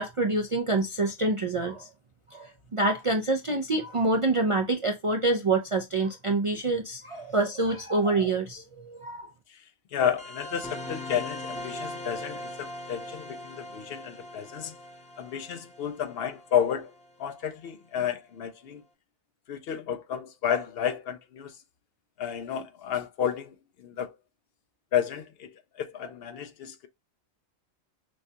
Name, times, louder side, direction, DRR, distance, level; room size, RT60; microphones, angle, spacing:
voice 1, 0.0-1.9 2.3-9.3, right 2 dB, 45° right, 0.4 m, -26 dB
voice 2, 9.9-14.7 15.2-16.9 17.2-18.8 19.5-21.6 22.2-24.2 24.9-25.5 25.7-26.9, left 9 dB, 65° left, 0.7 m, -31 dB
sound 1, 10.2-17.3, left 1 dB, 5° left, 0.8 m, -40 dB
6.2 x 2.3 x 2.7 m
omnidirectional pair, 1.2 m